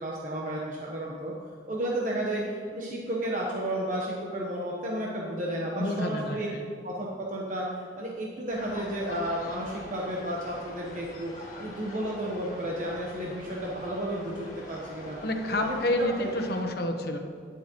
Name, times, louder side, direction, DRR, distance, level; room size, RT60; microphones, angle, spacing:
voice 1, 0.0-1.3 1.7-6.5 6.8-11.3 11.6-15.2 15.5-16.3, right 1 dB, 45° right, -3 dB, 1.1 m, -32 dB
voice 2, 5.8-6.6 15.2-17.2, left 1 dB, 60° left, 4 dB, 1.1 m, -29 dB
sound 1, 8.5-16.7, left 1 dB, 40° left, 2.1 m, -44 dB
12.5 x 10.5 x 3.1 m, 2.2 s
head